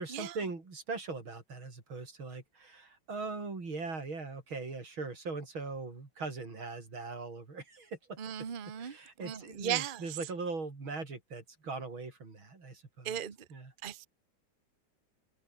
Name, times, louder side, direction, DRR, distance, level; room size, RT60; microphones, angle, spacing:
voice 1, 0.0-8.2 8.8-13.2 13.5-13.7, right 3 dB, 90° right, 5.5 m, -40 dB
voice 2, 8.2-10.0 13.0-13.4 13.8-14.1, right 9 dB, 30° right, 1.1 m, -37 dB
omnidirectional pair, 2.2 m